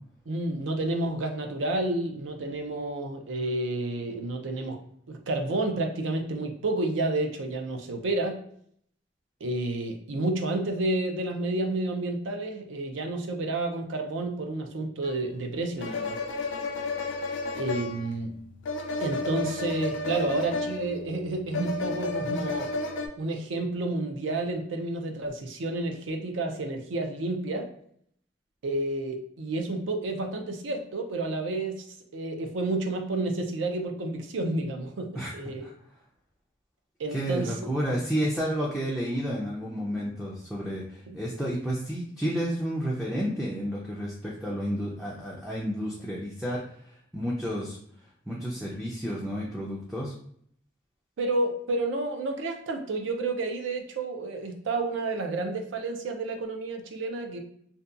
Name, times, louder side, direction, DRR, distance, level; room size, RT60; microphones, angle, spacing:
voice 1, 0.3-4.8 5.1-8.4 9.4-16.2 17.5-18.4 19.0-22.7 23.2-27.7 28.6-31.9 32.1-35.7 37.0-37.6 41.1-41.2 51.2-57.4, right 2 dB, 80° right, 4 dB, 0.4 m, -30 dB
sound 1, 15.0-15.1 15.8-23.1, left 3 dB, 80° left, 0.4 m, -32 dB
voice 2, 37.1-46.6 47.1-47.8 48.3-50.1, equal, ahead, -5 dB, 0.3 m, -31 dB
2.7 x 2.2 x 2.4 m, 0.66 s
head